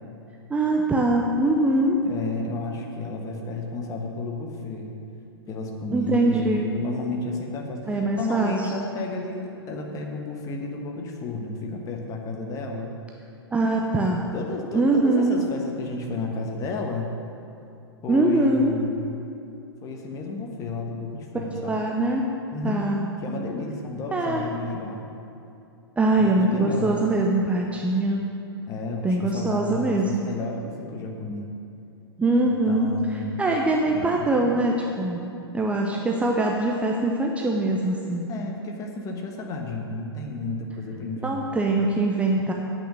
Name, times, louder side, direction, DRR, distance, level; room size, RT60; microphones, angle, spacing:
voice 1, 0.5-2.0 5.9-6.6 7.9-8.5 13.5-14.2 14.7-15.5 18.1-18.8 21.6-22.2 22.6-23.0 24.1-24.5 26.0-28.3 29.0-30.3 32.2-35.2 35.5-38.3 41.2-42.5, right 2 dB, 10° right, 0 dB, 0.6 m, -23 dB
voice 2, 2.0-4.9 5.5-12.9 14.3-17.1 18.0-19.3 19.8-21.8 22.5-25.0 26.1-27.0 28.7-31.5 32.7-33.4 33.9-34.5 38.3-41.6, left 3 dB, 25° left, 1 dB, 1.3 m, -32 dB
8.6 x 6.2 x 7.7 m, 2.7 s
figure-of-eight pair, 110°, 14 cm